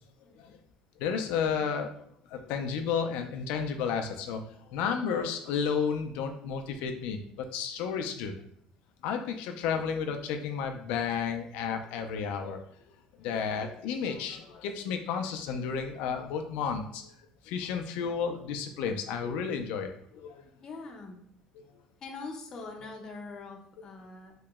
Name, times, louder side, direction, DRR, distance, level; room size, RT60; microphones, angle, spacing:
voice 1, 0.2-0.6 13.1-13.5 20.6-21.2 22.0-24.3, left 3 dB, 30° left, 2 dB, 0.6 m, -44 dB
voice 2, 1.0-1.9 2.3-4.4 4.7-8.3 9.0-12.6 13.2-17.1 17.4-20.4 21.6-21.7, left 6 dB, 85° left, 5 dB, 0.4 m, -32 dB
3.0 x 2.8 x 3.5 m, 0.65 s
cardioid pair, 170°, 2 cm